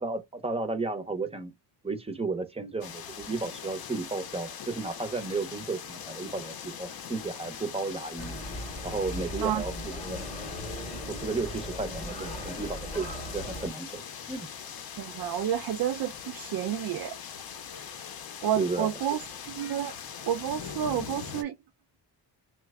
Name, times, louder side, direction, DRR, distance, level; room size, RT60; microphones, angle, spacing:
voice 1, 0.0-1.5 1.8-8.4 8.8-10.2 11.1-14.0 14.3-14.5 18.6-18.9, right 3 dB, 10° right, 0.7 m, -33 dB
sound 1, 2.8-21.4, left 7 dB, 50° left, 0.7 m, -42 dB
sound 2, 8.2-13.7, equal, 15° left, 0.9 m, -38 dB
voice 2, 15.0-17.2 18.4-19.2 19.5-20.0 20.3-21.5, right 10 dB, 50° right, 0.4 m, -30 dB
3.0 x 2.2 x 3.5 m
cardioid pair, 105°, 48 cm